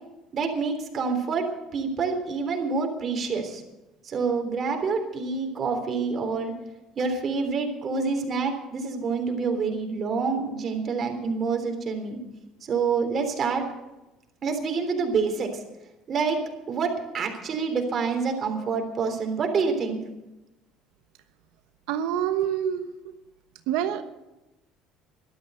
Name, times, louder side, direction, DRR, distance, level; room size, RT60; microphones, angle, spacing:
voice 1, 0.3-1.4 1.7-3.6 4.0-6.5 7.0-12.2 12.7-13.6 14.4-15.5 16.1-16.4 16.7-20.0, right 5 dB, 40° right, 4 dB, 3.5 m, -27 dB
voice 2, 21.9-22.9 23.7-24.0, right 10 dB, 85° right, 8 dB, 1.1 m, -26 dB
12.5 x 12.5 x 7.9 m, 0.99 s
supercardioid pair, 100°, 0 cm